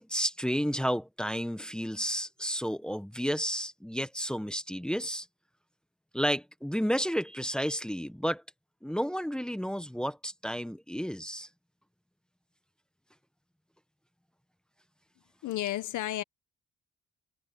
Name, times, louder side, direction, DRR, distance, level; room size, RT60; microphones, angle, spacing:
voice 1, 0.0-5.3 6.1-8.4 8.8-11.5, equal, 5° left, 1.4 m, -31 dB
voice 2, 15.4-16.2, left 14 dB, 75° left, 1.1 m, -32 dB
cardioid pair, 90°, 30 cm